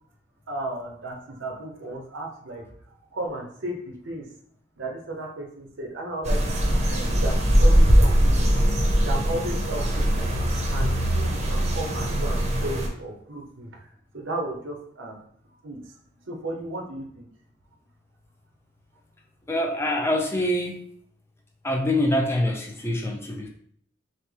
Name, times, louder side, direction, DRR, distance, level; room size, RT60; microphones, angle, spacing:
voice 1, 0.5-2.6 3.1-4.2 4.8-6.4 6.9-8.5 9.0-10.2 10.7-13.9 14.1-15.2 15.6-15.8 16.2-17.2, right 1 dB, 85° right, 1 dB, 0.9 m, -34 dB
sound 1, 6.2-12.9, equal, 35° right, 0.7 m, -21 dB
voice 2, 19.5-20.8 21.6-23.5, left 1 dB, 15° left, 1 dB, 0.5 m, -25 dB
5.7 x 2.1 x 3.3 m, 0.62 s
head